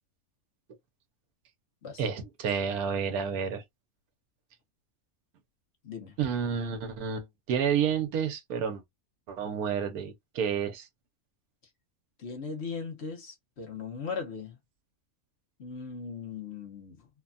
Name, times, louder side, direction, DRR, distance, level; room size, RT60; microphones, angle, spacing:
voice 1, 2.0-3.6 6.2-8.8 9.3-10.9, right 7 dB, 90° right, 1.3 m, -30 dB
voice 2, 5.8-6.2 12.2-14.6 15.6-17.1, left 5 dB, 55° left, 1.0 m, -38 dB
3.2 x 2.2 x 2.4 m
omnidirectional pair, 1.5 m